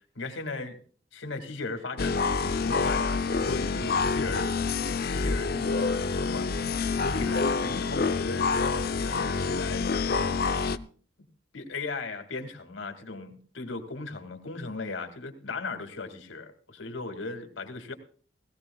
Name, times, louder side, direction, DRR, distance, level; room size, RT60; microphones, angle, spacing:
voice 1, 0.2-0.8 1.1-6.5 7.0-10.6 11.5-17.9, left 3 dB, 85° left, 7 dB, 2.3 m, -37 dB
sound 1, 2.0-10.8, left 4 dB, 55° left, 0.7 m, -27 dB
17.5 x 17.5 x 2.3 m, 0.43 s
head